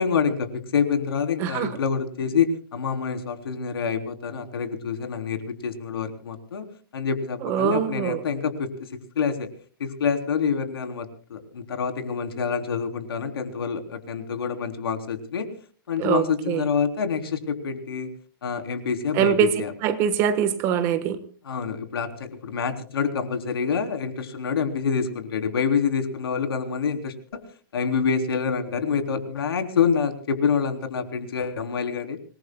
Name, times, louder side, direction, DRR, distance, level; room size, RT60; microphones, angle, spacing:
voice 1, 0.0-6.7 6.9-8.9 9.2-9.5 9.8-15.5 15.9-18.1 18.4-19.7 21.5-27.4 27.7-32.2, left 6 dB, 80° left, 7 dB, 3.6 m, -27 dB
voice 2, 1.4-1.7 7.4-8.2 16.0-16.7 19.1-19.5 19.8-21.2, right 9 dB, 20° right, 11 dB, 1.3 m, -23 dB
26.5 x 20.5 x 2.3 m, 0.40 s
hypercardioid pair, 175°, 12 cm